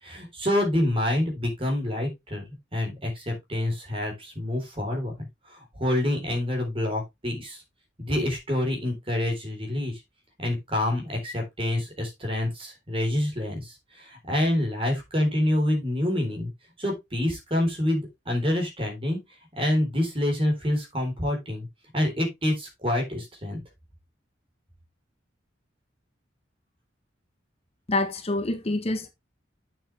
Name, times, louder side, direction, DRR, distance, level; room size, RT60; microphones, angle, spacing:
voice 1, 0.0-2.4 2.7-7.6 8.0-10.0 10.4-16.5 16.8-19.2 19.6-21.7 21.9-23.6, left 1 dB, 30° right, 3.7 m, -27 dB
voice 2, 27.9-29.1, left 2 dB, 30° left, 0.9 m, -26 dB
8.7 x 7.1 x 3.3 m
head